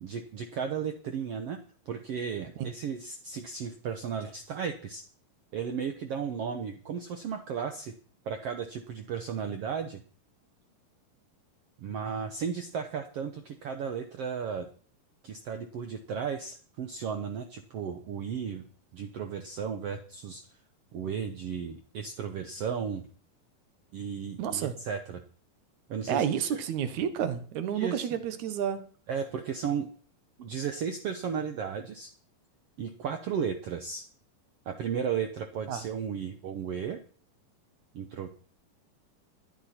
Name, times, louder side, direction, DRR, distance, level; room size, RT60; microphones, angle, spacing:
voice 1, 0.0-5.0 5.5-7.9 8.3-10.0 11.8-14.7 15.2-18.6 18.9-20.4 20.9-23.0 23.9-25.2 25.9-26.6 27.7-28.1 29.1-29.9 30.4-32.1 32.8-34.0 34.6-37.0 37.9-38.3, right 7 dB, 80° right, 6 dB, 1.3 m, -34 dB
voice 2, 24.4-24.7 26.1-28.8 35.7-35.8, right 8 dB, 65° right, 11 dB, 2.2 m, -30 dB
17.5 x 10.5 x 4.3 m, 0.43 s
omnidirectional pair, 4.1 m